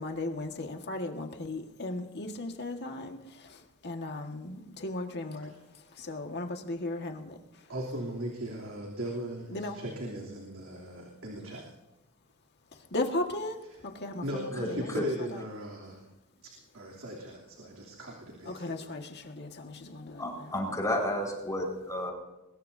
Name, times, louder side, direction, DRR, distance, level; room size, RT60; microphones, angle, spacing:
voice 1, 0.0-7.7 9.5-9.8 12.7-14.9 15.3-15.4 18.5-20.5, left 2 dB, 50° left, 4 dB, 1.8 m, -37 dB
voice 2, 7.7-11.6 14.2-16.1 16.7-18.7, right 1 dB, 75° right, -2 dB, 3.2 m, -38 dB
voice 3, 14.5-15.1 20.1-22.1, left 1 dB, 15° left, 0 dB, 5.1 m, -32 dB
22.5 x 21.5 x 2.8 m, 1.0 s
head